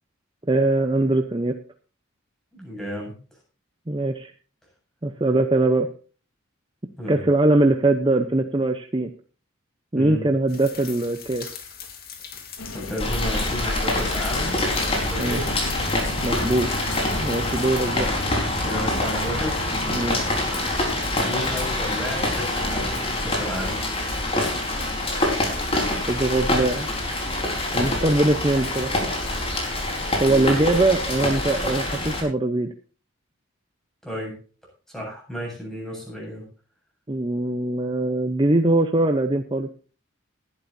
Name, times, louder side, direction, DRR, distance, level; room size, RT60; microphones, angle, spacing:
voice 1, 0.5-1.6 3.9-4.3 5.0-5.9 7.1-9.1 9.9-11.5 15.2-15.4 16.2-16.7 17.2-18.1 19.9-20.2 26.1-26.9 27.7-28.9 30.2-32.7 37.1-39.7, right 2 dB, 25° right, 6 dB, 0.8 m, -21 dB
voice 2, 2.5-3.1 7.0-7.2 9.9-10.3 12.7-14.6 14.9-15.5 17.9-18.1 18.6-19.7 21.2-23.8 30.3-30.5 34.0-34.4 34.9-36.5, equal, ahead, -2 dB, 8.0 m, -32 dB
sound 1, 10.5-17.9, left 7 dB, 45° left, 2.7 m, -41 dB
sound 2, 12.6-17.7, left 2 dB, 80° left, 1.6 m, -37 dB
Rain, 13.0-32.2, left 1 dB, 30° left, 4.4 m, -25 dB
19.0 x 11.5 x 2.7 m, 0.38 s
head